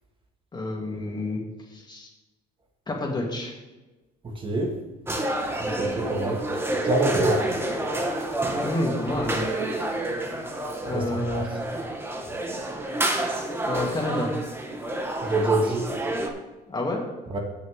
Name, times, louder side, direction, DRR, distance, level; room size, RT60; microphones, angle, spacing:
voice 1, 0.5-1.4 1.7-2.1 2.9-3.5 8.6-9.4 10.9-11.5 13.7-14.3 16.7-17.0, left 1 dB, 25° left, -1 dB, 2.5 m, -28 dB
voice 2, 4.2-4.8 5.6-6.5 6.8-7.5 10.8-11.5 15.2-15.9 17.3-17.4, right 2 dB, 30° right, 1 dB, 1.8 m, -26 dB
sound 1, 5.1-16.3, right 1 dB, 15° right, 1.4 m, -29 dB
16.0 x 6.3 x 3.6 m, 1.1 s
cardioid pair, 110°, 17 cm